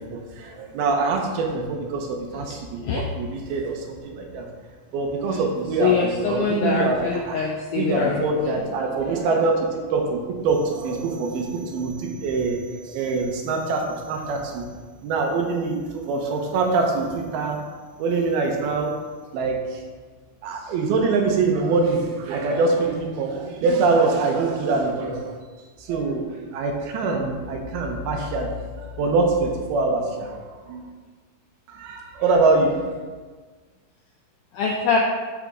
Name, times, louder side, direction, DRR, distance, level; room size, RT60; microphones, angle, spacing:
voice 1, 0.0-4.5 4.9-7.4 7.8-14.7 15.0-17.6 18.0-19.0 19.3-19.8 20.4-25.4 25.8-28.5 28.8-30.8 31.7-32.9, right 3 dB, 80° right, 1 dB, 2.9 m, -24 dB
voice 2, 5.8-8.5 34.5-35.0, left 5 dB, 85° left, -1 dB, 1.8 m, -24 dB
11.0 x 5.1 x 3.6 m, 1.4 s
omnidirectional pair, 4.5 m